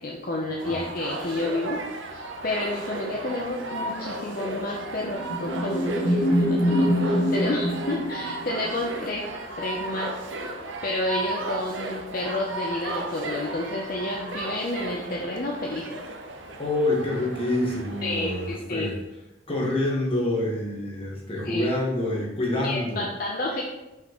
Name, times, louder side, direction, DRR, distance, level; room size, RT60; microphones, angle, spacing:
voice 1, 0.0-9.3 9.6-10.2 10.4-10.5 10.8-16.0 18.0-18.9 21.4-21.7 22.6-23.6, left 2 dB, 45° left, -1 dB, 0.6 m, -30 dB
sound 1, 0.6-18.6, right 2 dB, 85° right, 0.7 m, -35 dB
sound 2, 4.7-8.7, equal, 90° left, 1.4 m, -24 dB
voice 2, 16.6-18.9 19.5-23.1, left 1 dB, 30° left, -2 dB, 1.3 m, -27 dB
5.8 x 5.5 x 3.0 m, 0.99 s
head